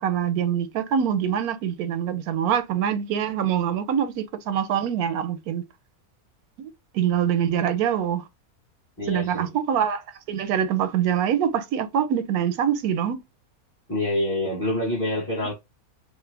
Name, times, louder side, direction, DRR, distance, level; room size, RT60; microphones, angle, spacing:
voice 1, 0.0-5.6 6.6-8.2 9.1-13.2, right 9 dB, 80° right, 1.1 m, -24 dB
voice 2, 9.0-9.5 13.9-15.5, left 1 dB, 10° left, 0.7 m, -26 dB
3.3 x 2.0 x 3.2 m
omnidirectional pair, 1.6 m